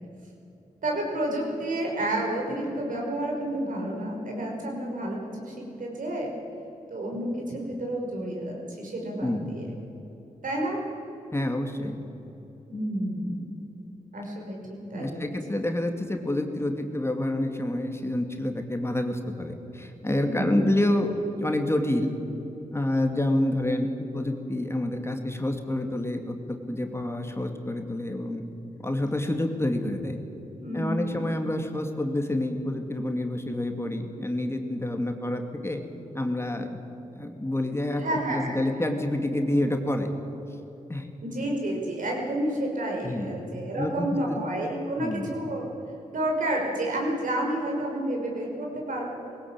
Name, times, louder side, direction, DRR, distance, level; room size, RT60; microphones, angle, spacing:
voice 1, 0.8-6.3 6.9-9.6 10.4-10.8 12.7-13.6 14.1-15.3 20.2-20.6 30.6-31.2 37.9-38.6 41.2-45.7 46.1-49.2, right 1 dB, 70° right, -1 dB, 5.5 m, -30 dB
voice 2, 11.3-12.0 15.0-22.1 22.7-28.4 28.8-30.2 30.7-35.8 36.1-36.8 37.1-40.1 40.9-41.1 43.0-43.4 43.8-44.4 45.0-45.3, left 1 dB, 20° left, 4 dB, 2.4 m, -28 dB
19.5 x 17.0 x 8.9 m, 3.0 s
cardioid pair, 55°, 14 cm